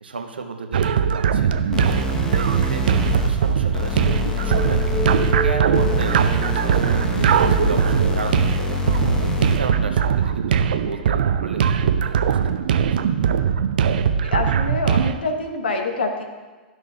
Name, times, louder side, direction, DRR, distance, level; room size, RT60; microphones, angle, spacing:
voice 1, 0.0-13.0, right 4 dB, 80° right, 5 dB, 0.8 m, -34 dB
sound 1, 0.7-15.1, right 7 dB, 60° right, 0.5 m, -20 dB
sound 2, 1.7-9.7, left 3 dB, 10° left, 1.0 m, -26 dB
sound 3, 3.6-8.3, left 1 dB, 10° right, 2.1 m, -32 dB
voice 2, 14.2-16.2, left 3 dB, 70° left, 4 dB, 1.1 m, -25 dB
12.5 x 6.2 x 2.3 m, 1.3 s
figure-of-eight pair, 100°, 5 cm